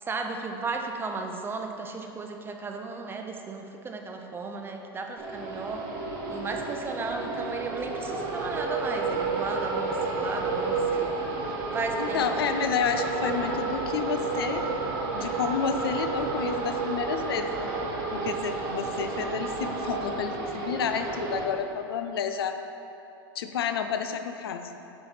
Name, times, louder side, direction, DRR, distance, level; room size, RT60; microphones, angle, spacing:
voice 1, 0.0-5.9 6.3-11.1 11.7-12.4, right 3 dB, 20° right, 3 dB, 0.6 m, -34 dB
sound 1, 5.2-21.4, right 3 dB, 65° right, 1.4 m, -31 dB
voice 2, 12.0-14.7 15.1-17.7 18.1-22.6 23.3-24.8, left 7 dB, 90° left, 7 dB, 0.5 m, -30 dB
8.9 x 3.4 x 5.7 m, 2.9 s
hypercardioid pair, 120°, 12 cm